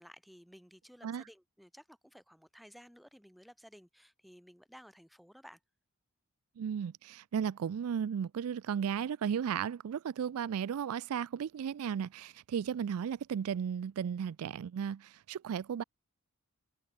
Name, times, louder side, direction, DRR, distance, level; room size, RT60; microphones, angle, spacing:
voice 1, 0.0-5.6, equal, ahead, 2.5 m, -56 dB
voice 2, 6.6-15.8, right 8 dB, 70° right, 0.3 m, -35 dB
open air
head